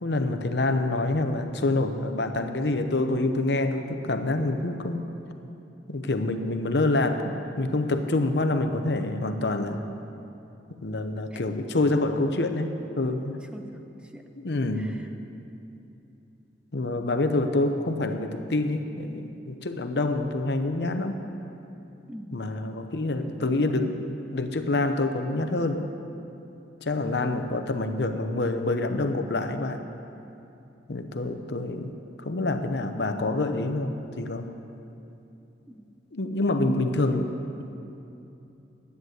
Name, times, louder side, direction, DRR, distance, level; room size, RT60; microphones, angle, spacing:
voice 1, 0.0-5.1 5.9-9.8 10.8-13.4 14.4-15.0 16.7-21.2 22.3-24.0 24.3-25.9 26.8-29.8 30.9-34.5 36.1-37.3, left 2 dB, 70° left, 7 dB, 0.8 m, -27 dB
voice 2, 13.5-14.3 14.8-15.1 22.1-22.4 23.2-23.9 35.7-35.9 36.5-37.3, equal, 5° right, 5 dB, 0.6 m, -43 dB
11.0 x 9.5 x 7.9 m, 2.8 s
head